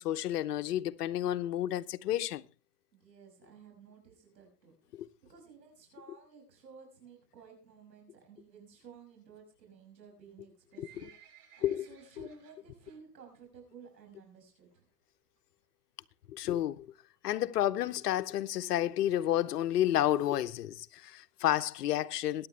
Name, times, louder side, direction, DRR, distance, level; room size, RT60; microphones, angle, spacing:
voice 1, 0.0-2.5 4.9-5.1 10.8-10.9 11.6-11.9 16.3-16.9 17.2-22.5, left 12 dB, 70° left, 1.0 m, -30 dB
voice 2, 2.9-14.8, right 6 dB, 90° right, 6.2 m, -55 dB
Livestock farm animals working animals, 10.3-13.0 13.3-13.6 13.9-14.0 14.7-14.8 15.1-15.2 15.4-15.5 16.0-16.3 16.8-16.9 17.2-17.3 17.4-17.5 17.7-17.8 18.3-18.4 18.9-19.0 19.4-19.5, right 8 dB, 70° right, 7.2 m, -60 dB
23.0 x 9.7 x 3.2 m
hypercardioid pair, 125°, 49 cm